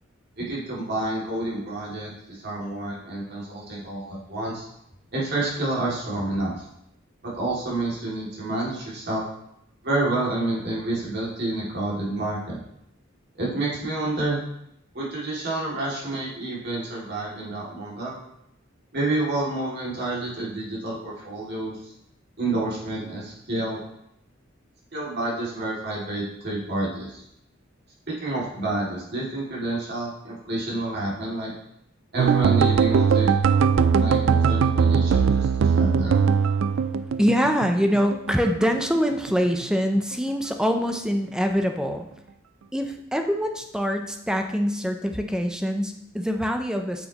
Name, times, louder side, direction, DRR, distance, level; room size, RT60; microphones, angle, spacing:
voice 1, 0.4-4.6 5.1-6.6 7.2-9.2 9.8-12.6 13.4-14.4 14.9-18.2 18.9-21.9 22.4-23.8 24.9-27.2 28.2-31.5 32.1-33.3 33.9-36.2, right 2 dB, 55° right, -5 dB, 2.5 m, -29 dB
sound 1, 32.2-38.4 38.6-39.7 40.0-40.3 40.6-40.8, right 6 dB, 75° right, 0.3 m, -20 dB
voice 2, 37.2-42.1 42.7-47.1, equal, 5° right, 4 dB, 0.6 m, -24 dB
8.5 x 6.2 x 3.0 m, 0.80 s
head